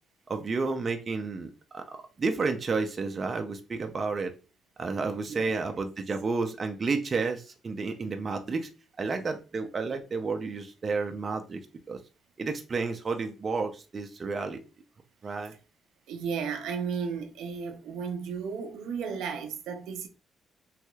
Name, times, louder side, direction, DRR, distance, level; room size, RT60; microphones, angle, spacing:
voice 1, 0.3-1.8 2.2-4.3 4.8-8.7 9.0-11.6 11.9-12.0 12.4-14.6 15.2-15.5, right 4 dB, 40° right, 0.5 m, -31 dB
voice 2, 5.3-5.8 16.1-20.1, right 6 dB, 85° right, 0.5 m, -34 dB
3.2 x 2.9 x 2.3 m
cardioid pair, 90°, 0 cm